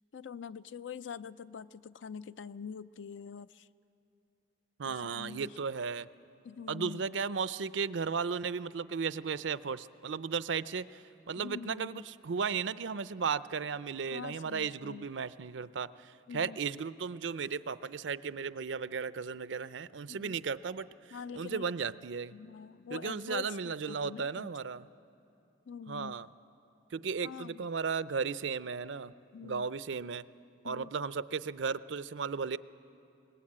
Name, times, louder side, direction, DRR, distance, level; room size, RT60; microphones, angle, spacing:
voice 1, 0.1-3.7 4.9-5.5 6.4-7.1 11.4-12.1 14.1-15.1 16.3-16.6 20.1-20.4 21.1-21.7 22.3-24.5 25.7-26.1 27.2-27.7 29.3-29.7 30.6-30.9, left 6 dB, 80° left, 15 dB, 0.5 m, -45 dB
voice 2, 4.8-6.1 6.7-22.3 22.9-24.9 25.9-26.3 26.9-29.1 29.4-30.3 30.6-32.6, right 5 dB, 80° right, 15 dB, 0.5 m, -35 dB
22.0 x 19.5 x 8.7 m, 2.7 s
head